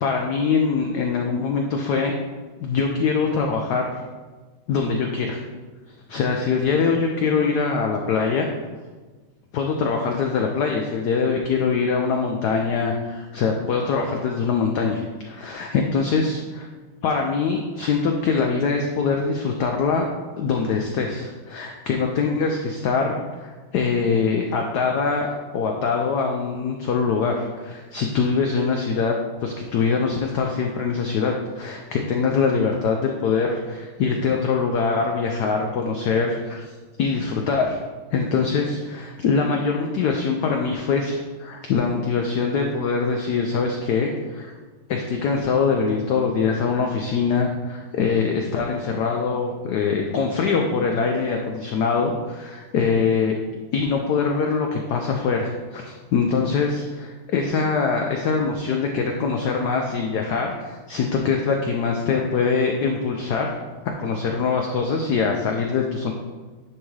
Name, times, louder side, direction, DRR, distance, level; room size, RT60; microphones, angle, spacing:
voice 1, 0.0-2.1 2.6-3.9 4.7-5.4 6.1-8.5 9.5-16.7 17.0-20.1 20.4-25.3 25.5-29.2 29.4-36.7 37.0-37.8 38.1-44.5 44.9-53.4 53.7-63.5 63.8-66.1, left 5 dB, 90° left, 2 dB, 0.8 m, -23 dB
10.0 x 3.6 x 3.2 m, 1.3 s
omnidirectional pair, 2.4 m